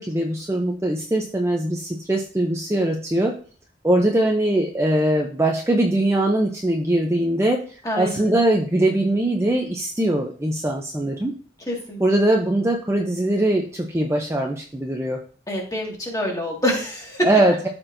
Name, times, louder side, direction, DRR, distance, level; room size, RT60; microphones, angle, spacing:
voice 1, 0.0-3.4 3.8-11.4 12.0-15.2 17.2-17.7, right 1 dB, 15° right, 1 dB, 0.5 m, -21 dB
voice 2, 7.8-8.3 11.7-12.0 15.5-17.3, equal, 15° left, -2 dB, 1.8 m, -26 dB
13.0 x 4.4 x 2.6 m, 0.42 s
head